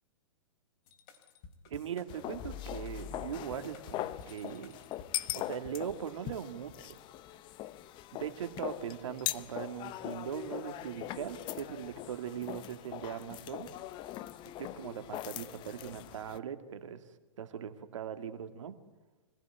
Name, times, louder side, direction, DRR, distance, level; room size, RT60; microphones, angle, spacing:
sound 1, 0.9-6.0, left 8 dB, 45° left, 3.3 m, -48 dB
voice 1, 1.7-4.8 5.3-7.0 8.1-13.7 14.4-17.0 17.4-18.8, right 9 dB, 70° right, 8 dB, 2.2 m, -40 dB
sound 2, 2.1-16.4, left 14 dB, 30° left, 0.8 m, -41 dB
26.0 x 16.0 x 9.2 m, 1.2 s
hypercardioid pair, 125°, 16 cm